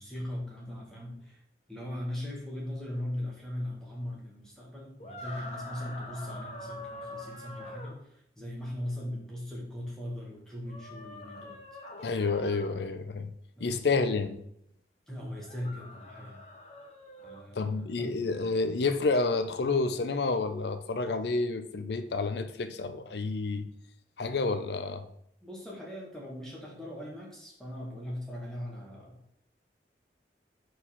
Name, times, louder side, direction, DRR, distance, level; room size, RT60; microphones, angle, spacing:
voice 1, 0.0-1.4 1.7-11.6 13.6-13.8 15.1-16.4 17.2-18.1 25.4-29.2, left 1 dB, 5° left, -4 dB, 1.6 m, -39 dB
sound 1, 5.0-8.0 10.7-12.8 15.4-17.4, left 2 dB, 40° left, 0.9 m, -44 dB
voice 2, 12.0-13.3 13.6-14.4 17.6-23.7 24.2-25.1, left 3 dB, 70° left, 9 dB, 0.6 m, -29 dB
4.7 x 4.3 x 5.6 m, 0.71 s
head